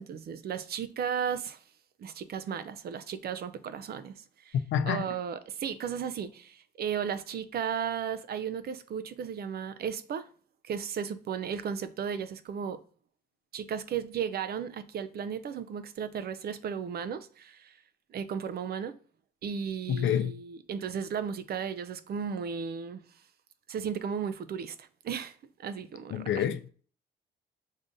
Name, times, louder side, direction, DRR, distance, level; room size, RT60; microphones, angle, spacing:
voice 1, 0.0-1.6 2.0-4.6 4.8-10.3 10.6-12.8 13.5-17.8 18.1-19.0 19.4-23.0 23.7-26.4, right 7 dB, 50° right, 0.5 m, -35 dB
voice 2, 4.7-5.1 19.9-20.3 26.1-26.7, left 9 dB, 75° left, 0.5 m, -28 dB
5.3 x 3.6 x 2.6 m
cardioid pair, 90°, 20 cm